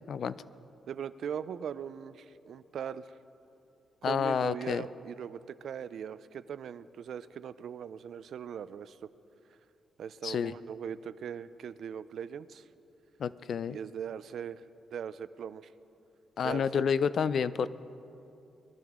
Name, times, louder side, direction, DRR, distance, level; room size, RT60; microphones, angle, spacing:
voice 1, 0.9-3.1 4.0-9.1 10.0-12.6 13.7-14.6 14.9-15.7 16.4-16.8 17.6-17.7, right 8 dB, 65° right, 15 dB, 0.4 m, -40 dB
voice 2, 4.0-4.8 10.2-10.5 13.2-13.8 16.4-17.7, left 7 dB, 55° left, 16 dB, 0.3 m, -29 dB
21.5 x 11.5 x 3.6 m, 2.8 s
cardioid pair, 140°, 0 cm